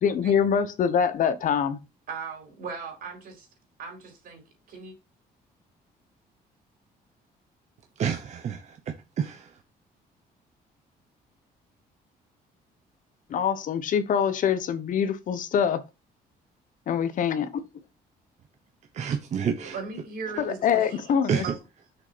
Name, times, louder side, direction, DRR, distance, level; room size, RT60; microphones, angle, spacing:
voice 1, 0.0-1.8 13.3-15.8 16.9-17.6 20.4-21.4, left 7 dB, 55° left, 1.1 m, -24 dB
voice 2, 2.1-3.5 3.8-4.4 4.7-4.9 19.6-21.6, right 5 dB, 65° right, 4.3 m, -38 dB
voice 3, 8.0-9.5 18.9-19.8 21.3-21.5, right 7 dB, 45° right, 0.9 m, -29 dB
6.6 x 6.1 x 4.1 m
cardioid pair, 145°, 16 cm